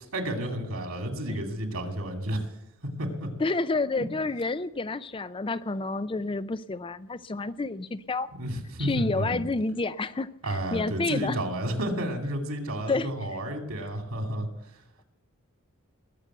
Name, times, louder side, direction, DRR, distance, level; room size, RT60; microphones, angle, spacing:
voice 1, 0.1-2.4 3.0-3.3 8.3-9.4 10.4-14.5, right 1 dB, 75° right, 2.6 m, -31 dB
voice 2, 3.4-8.3 8.8-11.4 12.9-13.1, left 3 dB, 25° left, 0.5 m, -29 dB
20.0 x 6.8 x 8.0 m
head